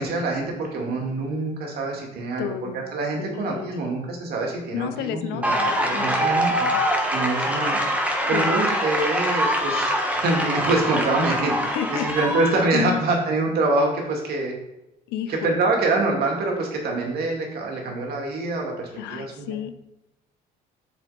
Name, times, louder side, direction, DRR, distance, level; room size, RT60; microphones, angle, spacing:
voice 1, 0.0-2.5 2.7-5.5 5.8-6.7 7.1-7.8 8.3-14.5 15.3-19.6, right 2 dB, 65° right, 0 dB, 2.5 m, -25 dB
voice 2, 2.4-2.9 3.2-3.9 4.7-6.8 8.3-8.7 11.6-12.2 12.7-13.0 15.1-15.6 18.9-19.7, left 10 dB, 90° left, 10 dB, 0.7 m, -32 dB
sound 1, 5.4-12.6, equal, 10° right, 1.5 m, -24 dB
7.3 x 6.6 x 4.3 m, 0.91 s
cardioid pair, 110°, 17 cm